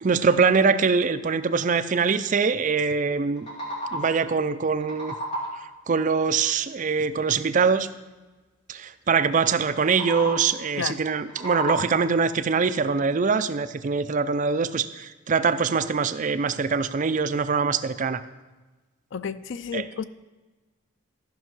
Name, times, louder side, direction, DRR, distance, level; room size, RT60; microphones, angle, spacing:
voice 1, 0.0-3.5 3.9-5.1 5.9-7.9 8.7-18.2 19.7-19.8, right 5 dB, 40° right, 11 dB, 0.4 m, -23 dB
sound 1, 3.2-4.3 4.6-5.8 9.7-10.6 11.1-12.2, equal, 25° left, 3.1 m, -33 dB
voice 2, 19.1-20.0, left 6 dB, 60° left, 14 dB, 0.4 m, -31 dB
14.0 x 5.5 x 6.1 m, 1.2 s
head